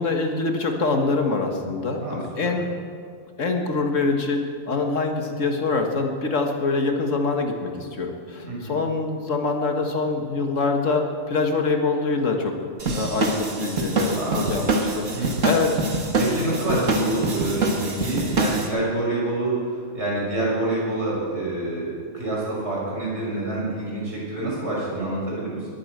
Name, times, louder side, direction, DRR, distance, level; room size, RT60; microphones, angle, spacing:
voice 1, 0.0-2.7 3.4-12.6 12.9-15.1 15.4-16.1 16.7-16.9, left 3 dB, 80° left, 3 dB, 1.9 m, -25 dB
voice 2, 2.0-2.5 8.4-8.7 14.2-14.5 15.0-15.3 16.2-25.7, right 2 dB, 60° right, -6 dB, 6.3 m, -27 dB
sound 1, 12.8-18.7, right 2 dB, 80° right, 2.0 m, -25 dB
20.5 x 8.6 x 7.8 m, 2.1 s
omnidirectional pair, 1.3 m